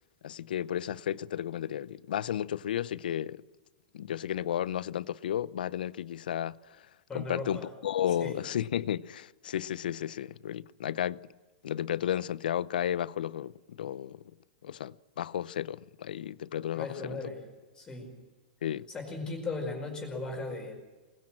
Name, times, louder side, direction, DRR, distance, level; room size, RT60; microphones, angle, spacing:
voice 1, 0.2-3.4 3.9-6.8 7.1-11.2 11.6-14.2 14.6-17.2 18.6-18.9, left 10 dB, 85° left, 0.7 m, -33 dB
voice 2, 7.1-7.7 8.2-8.4 16.7-17.4 17.7-18.1 18.9-20.8, left 3 dB, 15° left, 4.9 m, -37 dB
25.0 x 21.0 x 7.5 m
supercardioid pair, 150°, 5 cm